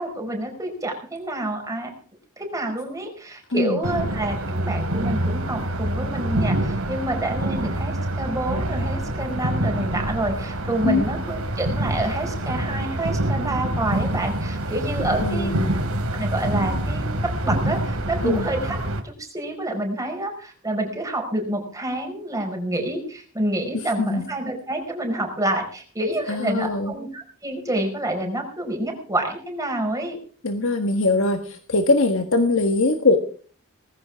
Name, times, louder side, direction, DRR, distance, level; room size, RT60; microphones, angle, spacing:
voice 1, 0.0-1.9 2.4-15.5 16.1-18.8 19.0-30.2, right 1 dB, 15° right, 3 dB, 5.2 m, -28 dB
sound 1, 3.8-19.0, right 1 dB, 80° right, 2.9 m, -26 dB
voice 2, 15.2-15.7 18.2-18.4 24.0-24.2 26.3-26.9 30.4-33.2, left 2 dB, 65° left, 6 dB, 1.5 m, -21 dB
19.0 x 16.0 x 3.6 m, 0.41 s
head